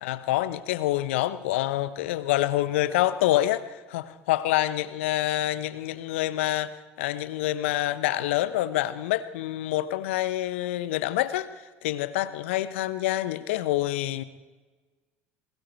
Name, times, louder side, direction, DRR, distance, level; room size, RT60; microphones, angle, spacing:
voice 1, 0.0-11.5 11.8-14.2, left 14 dB, 70° left, 14 dB, 1.1 m, -27 dB
28.5 x 21.5 x 4.6 m, 1.3 s
figure-of-eight pair, 65°, 7 cm